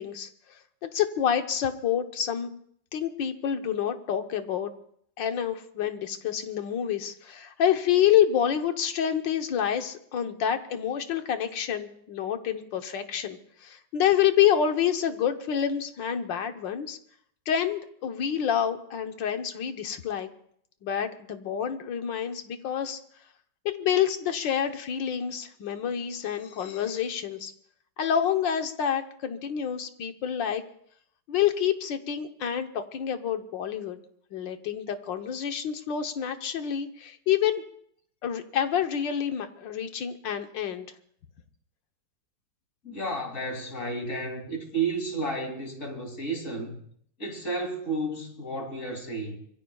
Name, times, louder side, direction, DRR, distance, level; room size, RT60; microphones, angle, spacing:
voice 1, 0.0-2.5 2.9-4.7 5.2-17.0 17.5-20.3 20.8-23.0 23.7-27.5 28.0-30.6 31.3-34.0 34.3-37.6 38.2-40.9, left 9 dB, 80° left, 1.8 m, -28 dB
voice 2, 42.8-46.8 47.2-49.4, right 2 dB, 40° left, 3.2 m, -32 dB
25.5 x 22.0 x 2.4 m
omnidirectional pair, 2.0 m